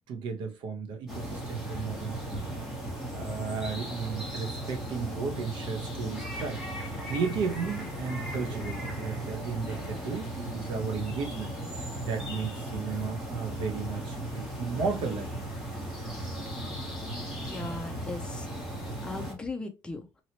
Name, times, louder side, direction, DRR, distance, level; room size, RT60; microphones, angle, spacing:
voice 1, 0.1-2.6 3.1-6.6 7.1-11.5 12.0-15.5, right 5 dB, 75° right, 1.0 m, -34 dB
sound 1, 1.1-19.3, right 1 dB, 5° right, 1.2 m, -36 dB
voice 2, 17.4-18.5 19.0-20.0, left 2 dB, 10° left, 0.5 m, -37 dB
2.9 x 2.9 x 2.8 m
cardioid pair, 145°, 8 cm